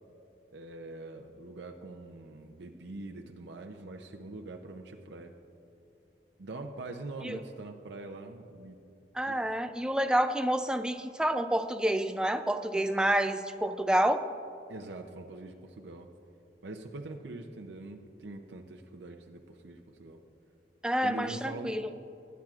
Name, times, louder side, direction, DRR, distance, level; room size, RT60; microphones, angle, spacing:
voice 1, 0.5-5.3 6.4-8.8 9.3-9.6 14.7-16.1 16.6-20.2 21.0-21.8, right 2 dB, 75° right, 3 dB, 0.6 m, -43 dB
voice 2, 9.2-14.2 20.8-21.9, right 1 dB, 5° right, 8 dB, 0.3 m, -28 dB
19.0 x 10.5 x 2.4 m, 2.7 s
head